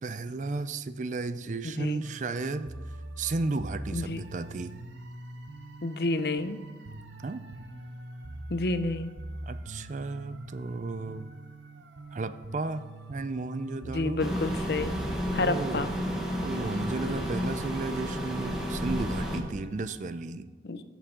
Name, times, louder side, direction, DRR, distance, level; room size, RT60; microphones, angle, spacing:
voice 1, 0.0-2.7 3.2-4.8 7.2-7.4 9.4-11.3 12.1-14.3 15.4-16.0 16.4-20.5, right 3 dB, 40° right, 13 dB, 0.4 m, -34 dB
voice 2, 1.6-2.0 3.9-4.2 5.8-6.6 8.5-9.1 13.8-14.9 15.3-15.9 20.6-20.8, left 2 dB, 60° left, 11 dB, 0.6 m, -29 dB
sound 1, 2.0-20.2, right 1 dB, 80° right, 0.9 m, -44 dB
sound 2, 14.2-19.4, equal, 5° right, 1.4 m, -32 dB
14.5 x 7.2 x 3.7 m, 1.2 s
head